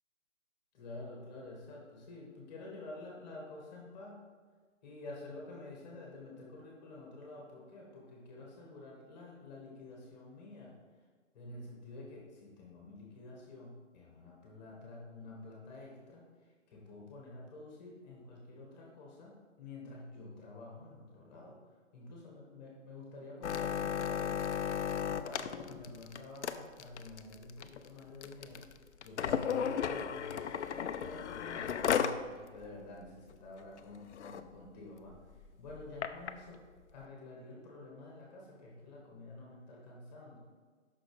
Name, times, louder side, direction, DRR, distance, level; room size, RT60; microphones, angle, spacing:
voice 1, 0.7-4.2 4.8-10.8 11.3-21.6 21.9-24.4 25.1-28.7 29.0-30.5 31.0-36.6 36.9-40.5, left 2 dB, 35° left, -2 dB, 2.0 m, -49 dB
sound 1, 23.4-32.2 32.6-32.7 33.0-33.3 33.8-33.9 34.1-34.4 35.1-36.3 37.0-37.1, left 8 dB, 65° left, 0.6 m, -35 dB
6.2 x 6.1 x 5.0 m, 1.5 s
hypercardioid pair, 150°, 38 cm